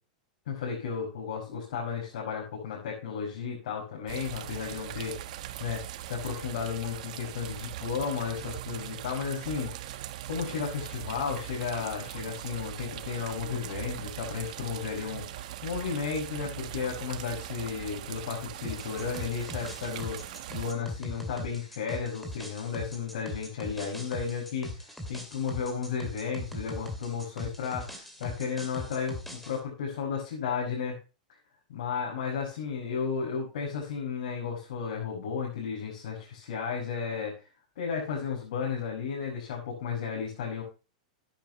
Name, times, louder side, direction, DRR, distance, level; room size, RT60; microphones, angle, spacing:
voice 1, 0.5-9.7 10.3-31.0 31.7-37.3 37.8-40.6, left 6 dB, 75° left, -4 dB, 5.7 m, -34 dB
sound 1, 4.1-20.7, right 13 dB, 65° right, 1.2 m, -40 dB
sound 2, 18.6-29.6, equal, ahead, 2.5 m, -41 dB
13.0 x 10.5 x 3.0 m, 0.31 s
supercardioid pair, 145°, 4 cm